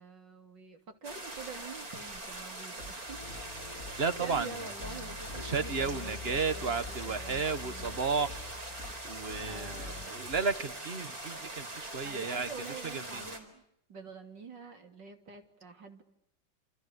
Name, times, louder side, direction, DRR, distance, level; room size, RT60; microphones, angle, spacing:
voice 1, 0.0-3.2 4.2-8.0 9.4-10.3 12.0-13.6 13.9-16.0, right 4 dB, 80° right, 5 dB, 3.7 m, -47 dB
sound 1, 1.0-13.4, right 2 dB, 55° right, 4.9 m, -42 dB
sound 2, 2.8-10.6, left 1 dB, 35° left, 2.9 m, -49 dB
sound 3, 3.1-10.1, left 6 dB, 20° left, 1.1 m, -47 dB
voice 2, 4.0-4.5 5.4-8.4 9.0-12.5 13.1-13.2, right 5 dB, 40° right, 12 dB, 1.3 m, -33 dB
29.5 x 27.5 x 6.7 m, 0.78 s
omnidirectional pair, 1.9 m